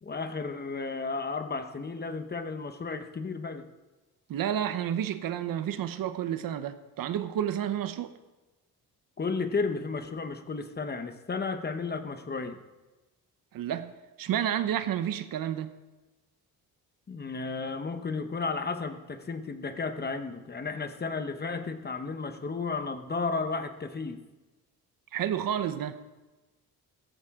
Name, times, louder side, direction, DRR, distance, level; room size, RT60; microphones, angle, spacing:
voice 1, 0.0-3.6 9.2-12.6 17.1-24.2, left 4 dB, 25° left, 1.1 m, -33 dB
voice 2, 4.3-8.1 13.5-15.7 25.1-26.0, right 10 dB, 65° right, 1.0 m, -30 dB
16.0 x 14.5 x 3.8 m
cardioid pair, 115°, 37 cm